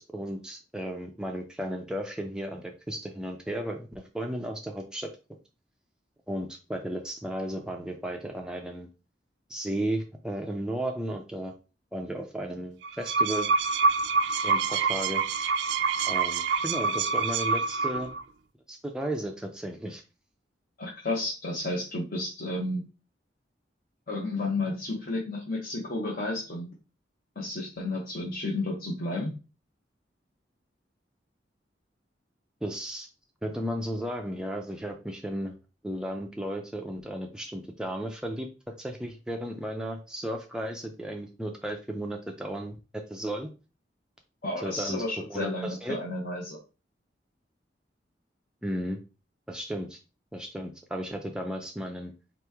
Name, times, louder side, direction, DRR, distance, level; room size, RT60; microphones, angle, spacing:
voice 1, 0.0-5.1 6.3-8.9 9.5-11.5 11.9-13.5 14.4-15.2 16.0-18.1 18.7-20.0 32.6-33.1 33.4-35.5 35.8-38.5 38.8-42.8 43.1-43.5 44.6-45.0 45.3-46.0 48.6-49.0 49.5-50.0 50.3-52.1, right 1 dB, 5° right, 2 dB, 0.4 m, -34 dB
sound 1, 12.8-18.2, right 4 dB, 75° right, 0.4 m, -26 dB
voice 2, 20.8-22.9 24.1-26.7 27.4-29.3 44.4-46.6, left 2 dB, 55° left, -2 dB, 0.8 m, -32 dB
4.1 x 3.0 x 3.4 m, 0.32 s
head